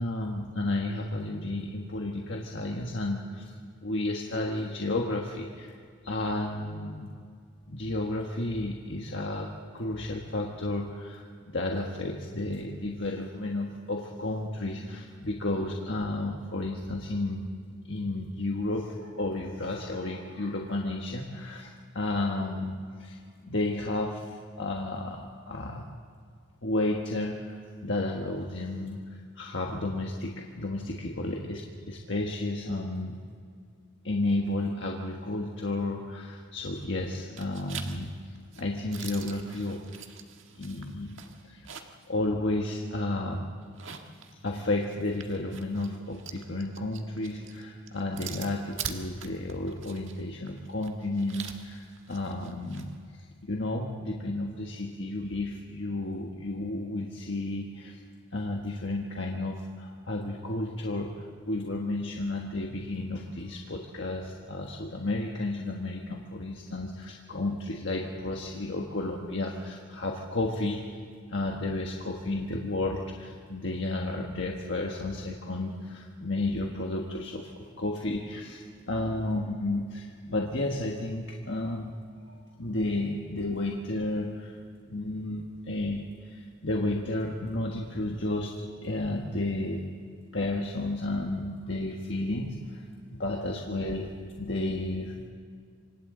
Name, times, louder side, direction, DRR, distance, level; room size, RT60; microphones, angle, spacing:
voice 1, 0.0-3.5 3.8-5.7 6.0-7.1 7.7-17.4 17.9-23.2 23.4-25.8 26.6-33.2 34.0-38.1 38.6-39.8 40.5-41.2 41.4-41.7 42.1-43.5 44.4-52.9 53.2-58.0 58.3-70.8 71.3-81.9 82.2-84.6 84.9-89.8 90.3-92.8 93.1-95.3, left 2 dB, 60° left, 0 dB, 1.5 m, -32 dB
sound 1, 36.6-37.1 37.4-42.1 42.4-42.5 43.6-52.9, right 7 dB, 65° right, 1.6 m, -44 dB
27.5 x 25.0 x 3.9 m, 2.1 s
head